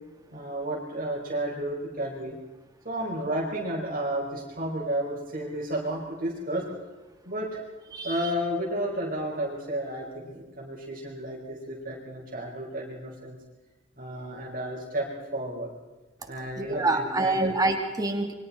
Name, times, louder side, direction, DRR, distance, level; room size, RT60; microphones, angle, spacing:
voice 1, 0.3-2.3 2.8-6.6 7.2-7.6 8.0-13.4 14.0-15.7 16.3-17.5, right 1 dB, 45° right, -2 dB, 5.0 m, -32 dB
voice 2, 16.6-18.3, right 2 dB, 20° right, 4 dB, 2.7 m, -26 dB
28.0 x 24.0 x 4.3 m, 1.1 s
head